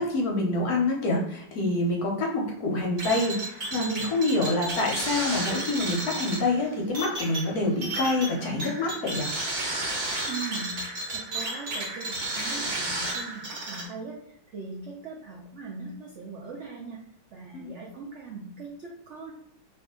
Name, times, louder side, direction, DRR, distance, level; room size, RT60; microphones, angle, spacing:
voice 1, 0.0-9.3 17.5-17.7, left 2 dB, 65° left, 0 dB, 1.1 m, -26 dB
sound 1, 3.0-13.9, right 2 dB, 45° right, 0.9 m, -32 dB
voice 2, 10.3-10.7 11.1-17.0 17.3-19.3, right 4 dB, 85° right, -2 dB, 0.6 m, -40 dB
2.8 x 2.6 x 3.6 m, 0.71 s
omnidirectional pair, 2.0 m